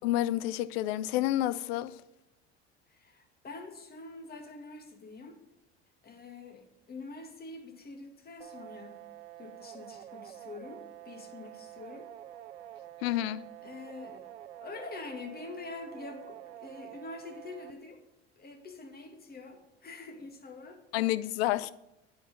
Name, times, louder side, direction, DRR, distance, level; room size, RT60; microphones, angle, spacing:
voice 1, 0.0-2.0 13.0-13.4 20.9-21.7, left 14 dB, 65° left, 0.5 m, -29 dB
voice 2, 2.9-5.4 6.0-9.0 9.4-12.1 13.6-14.3 14.6-18.0 18.4-20.8, left 3 dB, 25° left, 2.0 m, -45 dB
sound 1, 8.4-17.7, right 12 dB, 80° right, 0.6 m, -48 dB
9.1 x 6.4 x 5.5 m
figure-of-eight pair, 70°, 34 cm